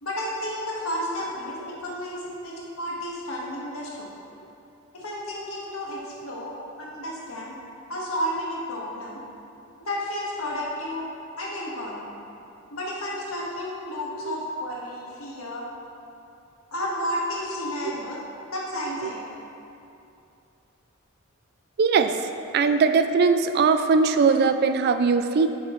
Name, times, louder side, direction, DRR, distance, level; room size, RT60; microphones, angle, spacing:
voice 1, 0.0-4.1 4.9-7.6 7.9-9.2 9.8-11.1 11.4-12.1 12.7-15.6 16.7-18.2 18.5-19.2, equal, 85° left, -4 dB, 1.6 m, -32 dB
voice 2, 21.8-22.1 22.5-25.5, right 5 dB, 50° right, 9 dB, 0.3 m, -20 dB
8.9 x 5.8 x 3.2 m, 2.7 s
head